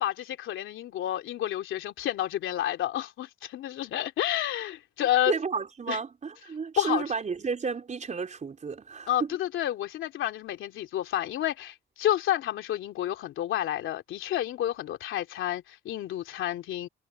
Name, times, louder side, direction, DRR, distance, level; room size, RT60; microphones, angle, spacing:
voice 1, 0.0-5.3 5.9-6.0 6.8-7.0 9.1-16.9, left 12 dB, 80° left, 3.1 m, -30 dB
voice 2, 5.3-9.3, right 5 dB, 35° right, 4.3 m, -32 dB
cardioid pair, 90°, 20 cm